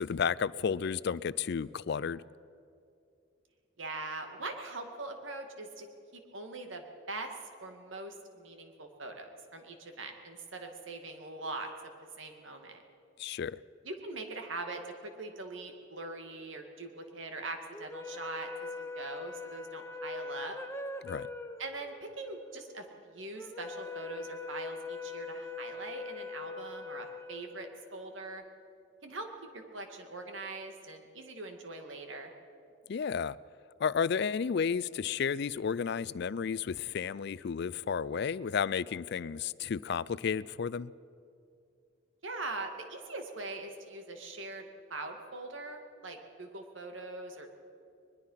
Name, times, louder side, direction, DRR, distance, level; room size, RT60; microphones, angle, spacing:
voice 1, 0.0-2.2 13.2-13.6 21.0-21.3 32.9-33.4 33.8-40.9, left 6 dB, 55° left, 0.4 m, -32 dB
voice 2, 3.8-5.9 6.1-7.3 7.6-11.7 12.2-12.8 13.8-14.8 15.2-20.6 21.6-28.4 29.0-32.3 42.2-47.6, right 2 dB, 75° right, 2.2 m, -42 dB
sound 1, 17.7-28.1, left 3 dB, 15° left, 0.9 m, -42 dB
21.5 x 21.0 x 5.7 m
head